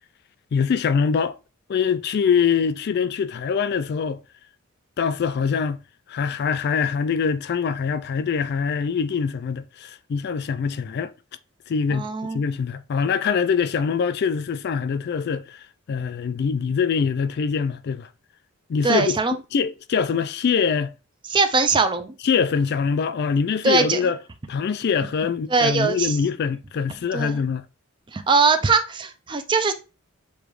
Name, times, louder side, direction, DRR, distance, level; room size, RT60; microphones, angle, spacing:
voice 1, 0.5-1.4 1.7-4.2 5.0-5.8 6.1-11.1 11.7-12.1 12.3-18.1 18.7-19.2 19.5-20.9 22.2-24.2 24.5-27.6, left 6 dB, 50° left, 0.3 m, -23 dB
voice 2, 11.9-12.4 18.8-19.4 21.3-22.1 23.6-24.0 25.5-26.2 27.1-27.4 28.1-29.7, right 4 dB, 20° right, 0.4 m, -21 dB
6.9 x 2.3 x 3.1 m
head